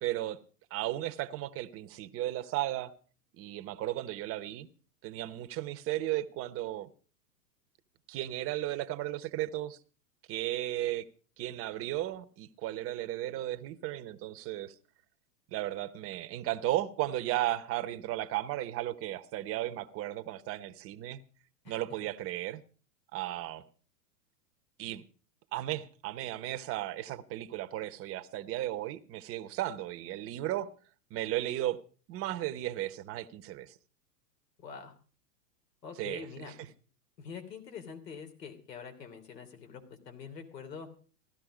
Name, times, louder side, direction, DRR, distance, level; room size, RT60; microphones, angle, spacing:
voice 1, 0.0-0.4 0.7-2.9 3.4-4.7 5.0-6.9 8.1-9.8 10.3-11.1 11.4-14.7 15.5-21.2 21.7-22.6 23.1-23.6 24.8-25.0 25.5-30.7 31.1-31.8 32.1-33.7 36.0-36.3 36.6-36.7, right 14 dB, 30° right, 0.9 m, -35 dB
voice 2, 34.6-34.9 35.8-36.5 37.2-40.9, left 6 dB, 90° left, 3.4 m, -45 dB
16.0 x 12.5 x 5.0 m
hypercardioid pair, 130°, 48 cm